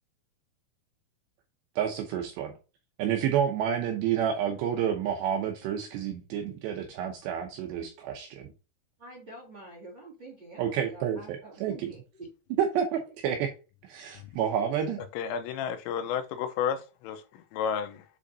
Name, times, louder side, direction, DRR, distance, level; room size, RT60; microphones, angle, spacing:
voice 1, 1.8-2.5 3.0-8.5 10.6-11.2 11.6-11.9 12.6-12.9 13.2-13.5 13.8-15.0, right 9 dB, 80° right, 2.5 m, -29 dB
voice 2, 9.0-12.3, right 2 dB, 40° right, 1.6 m, -47 dB
voice 3, 15.1-18.1, left 8 dB, 90° left, 3.5 m, -32 dB
7.6 x 5.0 x 2.8 m
omnidirectional pair, 5.7 m